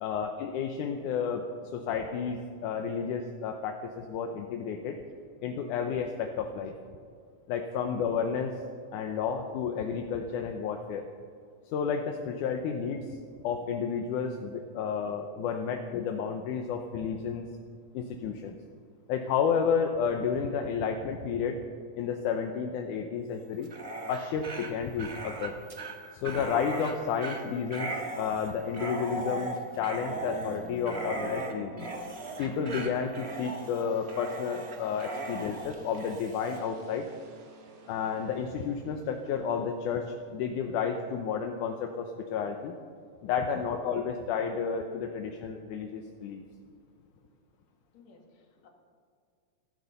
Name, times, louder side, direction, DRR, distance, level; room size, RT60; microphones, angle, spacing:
voice 1, 0.0-1.5 1.7-5.0 5.4-6.7 7.5-8.6 8.9-11.0 11.7-13.2 13.4-17.5 17.9-18.6 19.1-21.6 22.0-23.7 24.1-25.6 26.1-31.9 32.4-37.1 37.9-42.7 43.2-46.4, left 6 dB, 75° left, 4 dB, 2.3 m, -31 dB
Dog, 23.6-36.6, right 2 dB, 40° right, 0.9 m, -38 dB
sound 1, 29.5-41.2, right 3 dB, 65° right, 3.0 m, -51 dB
voice 2, 47.9-48.7, left 4 dB, 60° left, 2 dB, 3.1 m, -58 dB
14.5 x 14.0 x 6.8 m, 2.2 s
omnidirectional pair, 3.8 m